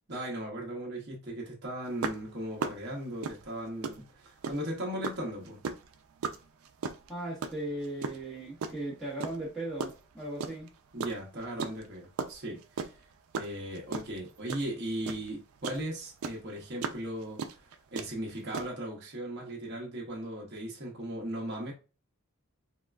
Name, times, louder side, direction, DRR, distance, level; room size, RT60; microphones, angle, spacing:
voice 1, 0.1-5.6 10.9-13.1 13.3-17.6 17.9-21.7, right 1 dB, 50° right, 0.8 m, -37 dB
sound 1, 2.0-4.7 5.0-8.8 9.2-10.7 11.0-15.8 16.2-18.7, right 5 dB, 85° right, 0.4 m, -36 dB
voice 2, 7.1-10.7, right 1 dB, ahead, 1.0 m, -37 dB
3.6 x 2.3 x 2.2 m
head